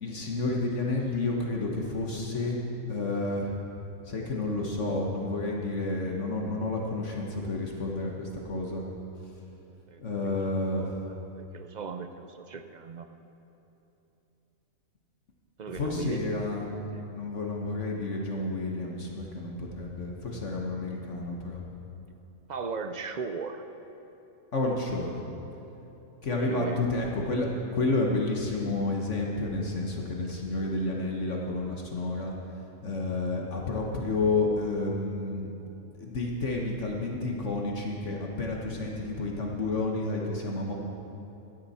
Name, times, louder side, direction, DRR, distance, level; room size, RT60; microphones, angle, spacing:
voice 1, 0.0-2.6 2.9-3.6 4.0-8.9 10.0-10.9 15.8-16.7 17.1-21.6 24.5-25.2 26.2-32.3 32.8-35.5 36.0-40.7, left 2 dB, 60° left, -1 dB, 1.6 m, -30 dB
voice 2, 9.9-10.4 10.7-10.9 11.4-13.1 15.6-16.6 16.9-17.1 22.5-23.6 26.4-26.9 27.1-27.3, right 5 dB, 60° right, 7 dB, 0.4 m, -37 dB
16.5 x 12.0 x 4.3 m, 3.0 s
omnidirectional pair, 1.5 m